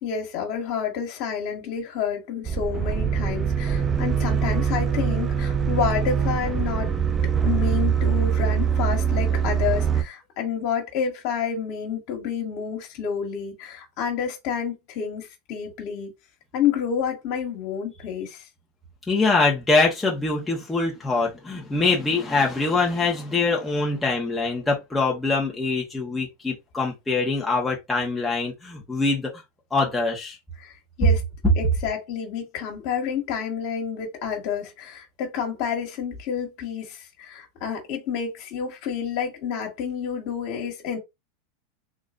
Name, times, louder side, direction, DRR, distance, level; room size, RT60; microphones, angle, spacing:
voice 1, 0.0-6.9 7.2-16.1 16.5-18.4 30.6-30.7 31.0-31.2 31.6-41.0, left 7 dB, 55° left, 1.8 m, -29 dB
sound 1, 2.4-10.0, right 7 dB, 25° right, 0.6 m, -23 dB
voice 2, 19.1-29.3 29.7-30.4, left 3 dB, 10° left, 1.3 m, -24 dB
3.9 x 3.1 x 2.6 m
hypercardioid pair, 100°, 0 cm